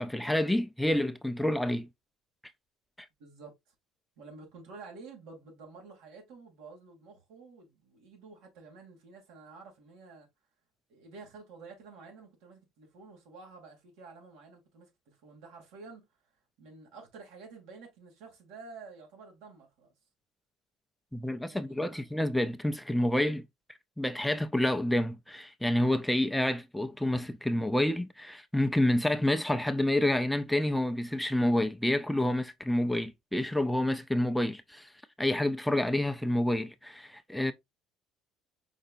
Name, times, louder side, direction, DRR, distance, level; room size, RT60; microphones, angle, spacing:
voice 1, 0.0-1.9 3.0-3.1 21.1-23.5 24.0-34.9 35.2-37.5, left 1 dB, ahead, 0.3 m, -28 dB
voice 2, 3.2-3.7 4.2-10.3 10.9-19.9 21.2-22.1, right 4 dB, 80° right, 2.4 m, -50 dB
5.2 x 4.0 x 2.4 m
cardioid pair, 150°, 0 cm